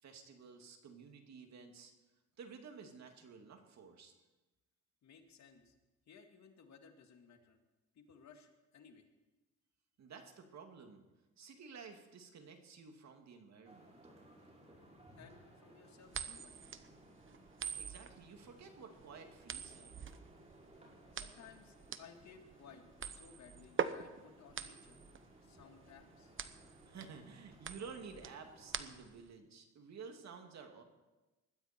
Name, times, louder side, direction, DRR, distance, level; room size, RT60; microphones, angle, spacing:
voice 1, 0.0-1.9 2.4-4.1 10.0-11.1 11.4-13.9 17.7-19.9 26.9-30.8, right 5 dB, 60° right, 4 dB, 2.6 m, -53 dB
voice 2, 5.0-5.7 6.1-7.6 7.9-9.1 15.2-16.7 21.1-26.3, left 6 dB, 65° left, 5 dB, 2.1 m, -59 dB
sound 1, 13.6-29.0, right 1 dB, 20° right, 6.1 m, -61 dB
sound 2, 16.1-29.3, right 7 dB, 40° right, 1.0 m, -44 dB
20.5 x 14.5 x 4.5 m, 1.1 s
cardioid pair, 90°, 30 cm